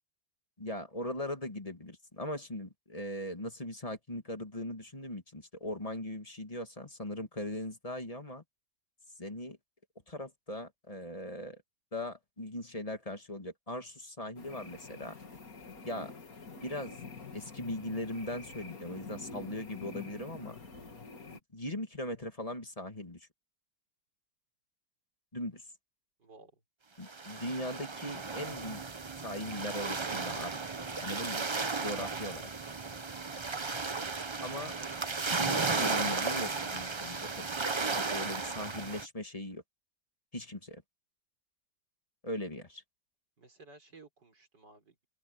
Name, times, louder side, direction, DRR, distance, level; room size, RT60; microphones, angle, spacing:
voice 1, 0.6-8.4 9.2-9.6 10.1-11.6 11.9-15.1 15.8-16.1 16.6-17.0 17.3-20.6 21.3-23.3 25.3-25.6 27.0-28.8 29.1-30.5 31.0-31.4 31.8-32.4 34.4-35.1 35.4-37.5 37.9-39.6 40.3-40.8 42.2-42.8, left 1 dB, 20° left, 2.1 m, -39 dB
sound 1, 14.4-21.4, left 4 dB, 55° left, 3.1 m, -47 dB
voice 2, 26.2-26.6 43.4-45.1, right 3 dB, 70° right, 6.2 m, -57 dB
sound 2, 27.1-39.1, right 4 dB, 40° right, 0.4 m, -34 dB
open air
omnidirectional pair, 1.9 m